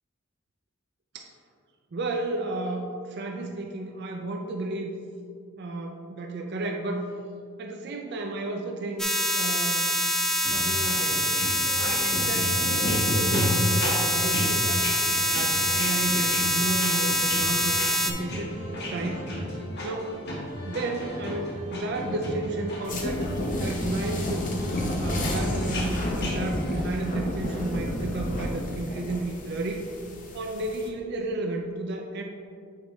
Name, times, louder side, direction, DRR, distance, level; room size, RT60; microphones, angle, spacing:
voice 1, 1.9-4.9 5.6-7.0 7.6-9.9 10.5-11.3 11.8-14.9 15.3-19.5 19.8-20.2 20.6-24.5 25.0-29.9 30.3-32.2, right 2 dB, 55° right, 3 dB, 0.5 m, -32 dB
sound 1, 9.0-18.1, left 1 dB, 5° left, 0.5 m, -25 dB
sound 2, 10.4-26.7, left 1 dB, 55° left, 1.3 m, -33 dB
sound 3, 22.8-30.9, left 1 dB, 40° left, 0.8 m, -32 dB
8.2 x 4.6 x 3.1 m, 2.3 s
head